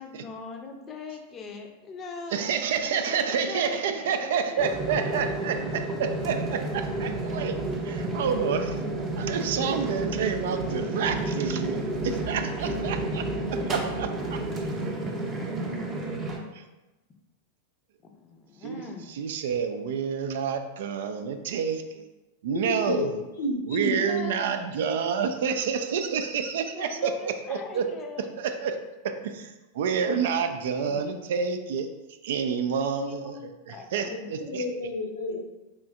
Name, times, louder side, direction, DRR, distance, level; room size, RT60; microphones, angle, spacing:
voice 1, 0.0-5.4 12.6-13.1 18.1-19.1 23.9-25.2 26.7-28.3 30.0-31.3 32.9-34.3, left 4 dB, 25° left, 3 dB, 0.6 m, -42 dB
voice 2, 2.3-7.6 7.8-8.8 9.2-13.3 13.7-14.4 16.5-16.6 18.6-18.8 19.1-22.1 22.4-23.2 23.7-27.9 28.6-28.7 29.0-31.9 32.2-33.4 33.7-34.6, right 6 dB, 55° right, 7 dB, 0.3 m, -29 dB
sound 1, 4.6-16.4, right 2 dB, 25° right, 0.7 m, -31 dB
voice 3, 23.4-23.9 34.5-35.4, left 1 dB, 70° left, 1 dB, 0.7 m, -29 dB
5.1 x 3.2 x 2.4 m, 1.1 s
figure-of-eight pair, 90°, 0 cm